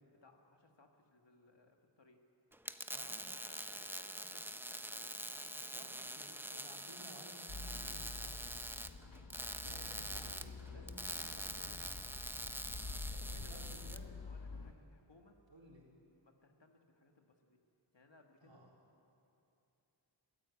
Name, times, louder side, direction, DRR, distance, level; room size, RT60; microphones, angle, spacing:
voice 1, 0.2-2.2 3.0-6.2 12.9-13.7 14.2-15.4 16.2-17.6 17.9-18.6, left 3 dB, 65° left, 3 dB, 1.9 m, -65 dB
sound 1, 2.5-14.0, right 1 dB, 5° right, 0.7 m, -45 dB
voice 2, 2.9-3.3 5.6-5.9 6.1-8.5 9.5-11.8 13.3-14.1 14.5-14.8 15.5-15.9 18.4-18.7, right 1 dB, 70° right, -3 dB, 4.2 m, -57 dB
sound 2, 7.5-14.7, left 4 dB, 45° left, 1.1 m, -48 dB
22.0 x 15.0 x 8.4 m, 2.8 s
wide cardioid pair, 55°, 46 cm